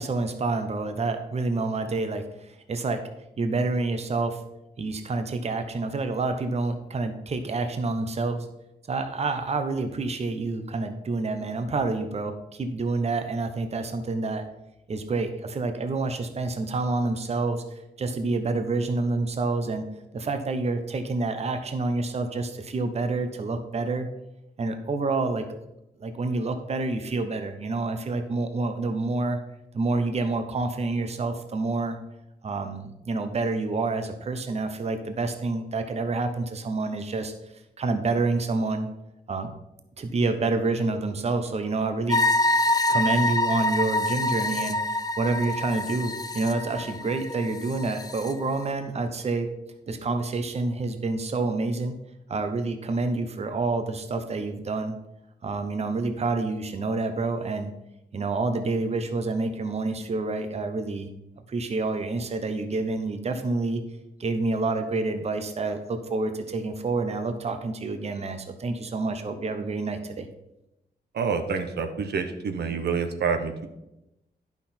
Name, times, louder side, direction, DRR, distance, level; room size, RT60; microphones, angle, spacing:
voice 1, 0.0-3.0 3.4-4.4 4.8-8.5 8.9-14.4 14.9-19.8 20.1-24.1 24.6-25.5 26.0-29.4 29.7-32.0 32.4-37.3 37.8-38.9 39.3-39.5 40.0-42.2 42.9-49.5 49.9-51.9 52.3-54.9 55.4-57.7 58.1-61.1 61.5-63.8 64.2-70.3, right 3 dB, 40° right, 8 dB, 0.8 m, -28 dB
sound 1, 42.1-48.3, left 2 dB, 20° left, 0.6 m, -26 dB
voice 2, 71.1-73.7, right 5 dB, 80° right, 7 dB, 0.9 m, -27 dB
10.5 x 5.9 x 4.3 m, 0.90 s
wide cardioid pair, 135°, 17 cm